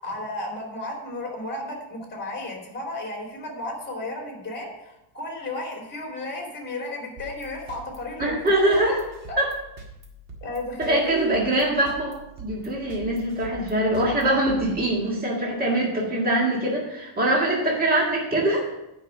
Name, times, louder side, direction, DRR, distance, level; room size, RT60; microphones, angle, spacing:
voice 1, 0.0-8.9 9.3-9.4 10.4-11.1, left 2 dB, 20° left, 0 dB, 2.9 m, -33 dB
sound 1, 7.2-15.3, right 2 dB, 35° right, 1.8 m, -44 dB
voice 2, 8.2-8.9 9.4-9.5 10.8-18.6, right 1 dB, 20° right, -3 dB, 1.8 m, -23 dB
9.1 x 5.7 x 6.4 m, 0.89 s
cardioid pair, 170°, 50 cm